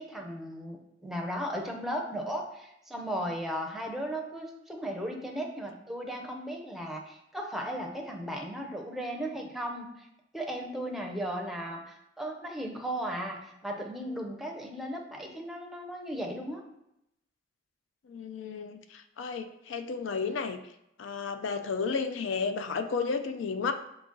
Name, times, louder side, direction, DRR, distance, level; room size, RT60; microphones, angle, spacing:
voice 1, 0.0-10.1 10.3-16.6, equal, ahead, 1 dB, 0.5 m, -36 dB
voice 2, 18.1-20.6 21.0-23.7, left 5 dB, 85° left, 8 dB, 0.4 m, -32 dB
3.9 x 2.9 x 3.8 m, 0.82 s
head